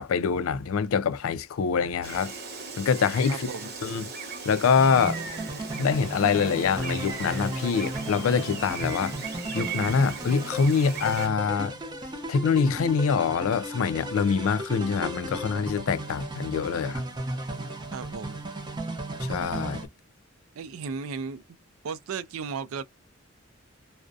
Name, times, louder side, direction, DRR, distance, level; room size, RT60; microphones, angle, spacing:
voice 1, 0.0-2.3 2.8-3.5 3.8-4.0 4.4-5.2 5.8-9.2 9.5-11.7 12.3-17.0 19.3-19.9, left 6 dB, 80° left, 0.4 m, -25 dB
Gull seagull, 2.0-11.3, right 4 dB, 50° right, 0.8 m, -38 dB
voice 2, 3.3-3.7 17.9-18.4 20.6-21.4 21.8-22.8, right 5 dB, 85° right, 0.4 m, -35 dB
sound 1, 4.8-19.9, right 1 dB, 20° right, 0.5 m, -35 dB
2.3 x 2.1 x 2.5 m
head